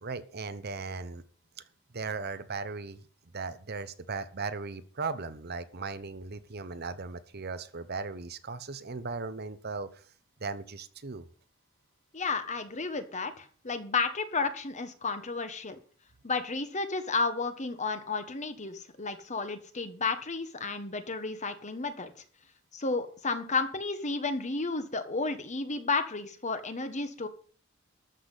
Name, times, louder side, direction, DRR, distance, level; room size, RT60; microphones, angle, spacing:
voice 1, 0.0-1.2 1.9-3.0 3.3-10.0 10.4-11.3, right 4 dB, 50° right, 12 dB, 0.9 m, -37 dB
voice 2, 12.1-15.8 16.2-22.1 22.7-27.3, left 4 dB, 35° left, 9 dB, 1.4 m, -32 dB
13.0 x 5.9 x 8.2 m, 0.43 s
head